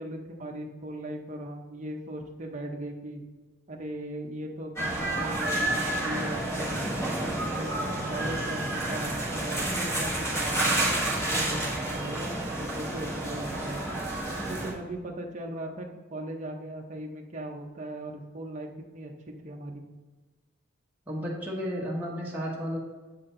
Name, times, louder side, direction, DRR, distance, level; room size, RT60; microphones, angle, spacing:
voice 1, 0.0-3.2 3.7-14.0 14.5-19.8, right 1 dB, 35° right, 1 dB, 0.7 m, -38 dB
sound 1, 4.8-14.7, right 1 dB, 15° left, 1.3 m, -30 dB
voice 2, 21.1-22.8, equal, 10° right, -6 dB, 1.0 m, -32 dB
7.5 x 4.3 x 3.8 m, 1.3 s
head